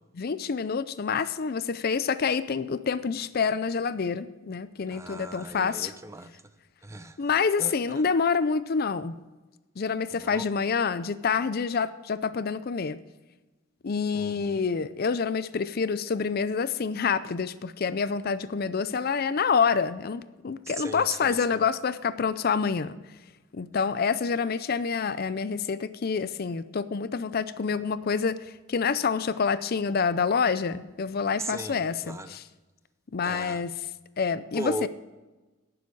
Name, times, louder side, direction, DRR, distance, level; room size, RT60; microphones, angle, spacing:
voice 1, 0.2-5.9 7.2-9.2 9.8-13.0 13.8-23.0 23.5-32.4 33.1-33.7 34.2-34.9, left 5 dB, 50° left, 14 dB, 0.5 m, -27 dB
voice 2, 4.9-6.3 6.8-7.2 7.6-8.1 10.1-10.4 14.1-14.6 20.7-21.6 31.4-32.4 33.2-33.6 34.5-34.9, right 2 dB, 15° right, 11 dB, 0.6 m, -38 dB
17.5 x 7.0 x 4.7 m, 1.2 s
head